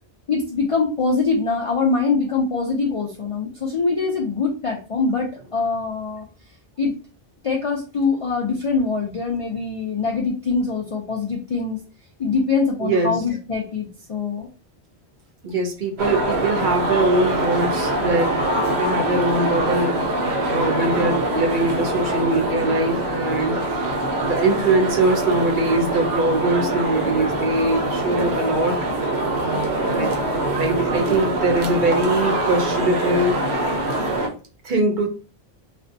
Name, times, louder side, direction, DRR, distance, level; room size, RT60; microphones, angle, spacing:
voice 1, 0.3-6.3 6.8-7.0 7.4-11.8 12.2-14.5 20.9-21.2, left 4 dB, 55° left, 0 dB, 0.3 m, -23 dB
voice 2, 12.8-13.2 15.4-23.7 24.2-28.8 29.4-30.1 30.6-33.4 34.6-35.1, right 2 dB, 55° right, 3 dB, 0.7 m, -22 dB
sound 1, 16.0-34.3, right 2 dB, 85° right, 0.9 m, -23 dB
2.5 x 2.1 x 2.5 m, 0.35 s
omnidirectional pair, 1.1 m